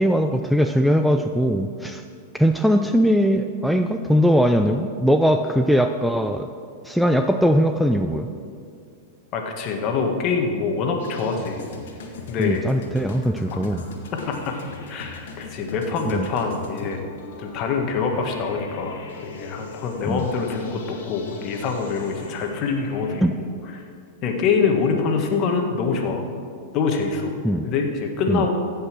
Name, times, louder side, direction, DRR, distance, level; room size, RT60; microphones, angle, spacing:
voice 1, 0.0-2.0 2.3-6.5 6.8-8.3 12.4-13.8 16.1-16.3 20.1-20.2 23.2-23.3 27.4-27.7 28.3-28.4, equal, ahead, 6 dB, 0.5 m, -20 dB
voice 2, 9.3-11.6 12.3-12.7 14.1-14.5 14.9-17.0 17.4-23.2 23.7-23.8 24.2-26.2 26.7-27.3 27.6-28.5, left 5 dB, 45° left, 3 dB, 1.7 m, -25 dB
sound 1, 11.0-23.2, left 4 dB, 75° left, 1.7 m, -40 dB
15.0 x 5.6 x 6.1 m, 2.3 s
hypercardioid pair, 110°, 0 cm